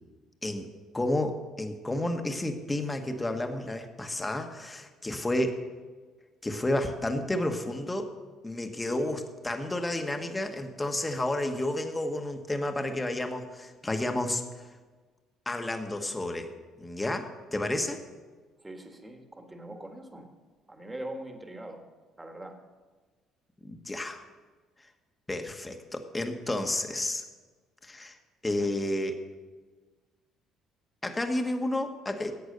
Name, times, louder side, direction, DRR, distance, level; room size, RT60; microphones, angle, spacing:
voice 1, 0.9-5.6 6.4-8.1 8.4-14.6 15.5-16.5 16.8-18.0 23.6-24.2 25.3-27.2 27.8-28.2 28.4-29.2 31.0-32.3, left 1 dB, 15° left, 6 dB, 1.2 m, -31 dB
voice 2, 18.6-20.3 20.7-21.8 22.2-22.5, right 1 dB, 15° right, 4 dB, 1.6 m, -42 dB
11.5 x 8.0 x 6.6 m, 1.4 s
cardioid pair, 95°, 0 cm